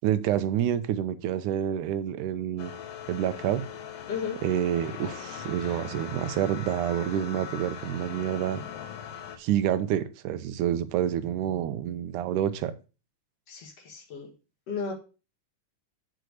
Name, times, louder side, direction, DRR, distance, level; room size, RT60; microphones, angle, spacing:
voice 1, 0.0-2.7 3.1-3.6 4.4-8.6 9.4-12.7, right 10 dB, 80° right, 11 dB, 2.2 m, -28 dB
sound 1, 2.6-9.4, left 8 dB, 75° left, 2.2 m, -40 dB
voice 2, 4.1-4.4 13.5-14.3 14.7-14.9, left 6 dB, 55° left, 2 dB, 2.6 m, -34 dB
6.5 x 4.6 x 6.4 m, 0.33 s
omnidirectional pair, 3.6 m